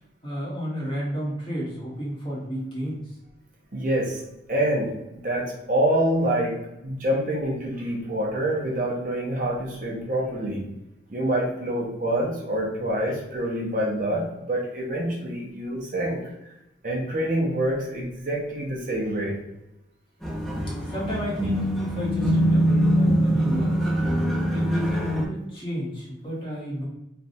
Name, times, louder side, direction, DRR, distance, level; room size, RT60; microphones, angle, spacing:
voice 1, 0.2-3.0 20.8-23.8 24.5-26.9, equal, 25° left, -6 dB, 1.2 m, -31 dB
voice 2, 3.7-4.2 4.5-5.0 5.2-6.6 6.8-10.6 11.1-16.2 16.8-19.4, right 1 dB, 45° right, -2 dB, 0.8 m, -26 dB
sound 1, 20.2-25.2, equal, ahead, 0.7 m, -23 dB
3.3 x 2.4 x 4.1 m, 0.90 s
head